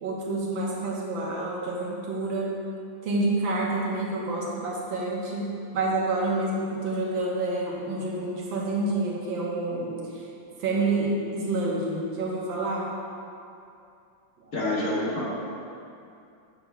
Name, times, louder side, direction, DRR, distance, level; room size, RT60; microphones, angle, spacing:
voice 1, 0.0-2.5 3.0-10.3 10.6-12.9 14.4-14.5, right 2 dB, 80° right, -4 dB, 1.8 m, -28 dB
voice 2, 14.5-15.2, left 1 dB, 55° left, -6 dB, 1.4 m, -27 dB
8.0 x 6.9 x 2.3 m, 2.6 s
omnidirectional pair, 2.1 m